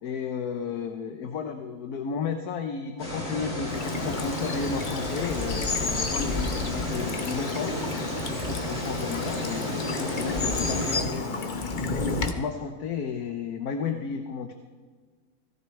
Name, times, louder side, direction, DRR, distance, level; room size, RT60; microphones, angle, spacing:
voice 1, 0.0-7.7 8.3-11.7 12.4-14.5, left 6 dB, 90° left, 6 dB, 1.3 m, -33 dB
sound 1, 3.0-11.0, left 1 dB, 60° left, 5.2 m, -32 dB
Bird vocalization bird call bird song / Stream, 3.7-12.3, left 3 dB, 40° left, 0.9 m, -31 dB
18.0 x 15.0 x 3.2 m, 1.5 s
omnidirectional pair, 1.6 m